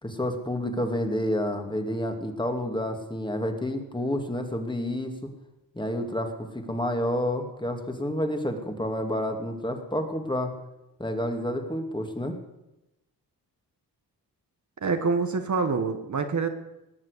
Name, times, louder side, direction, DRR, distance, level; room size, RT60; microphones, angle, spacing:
voice 1, 0.0-5.3 5.7-10.5 11.0-12.4, left 1 dB, 10° left, 5 dB, 2.4 m, -29 dB
voice 2, 14.8-16.5, right 4 dB, 45° right, 7 dB, 1.4 m, -26 dB
19.5 x 7.5 x 8.3 m, 0.95 s
cardioid pair, 75°, 41 cm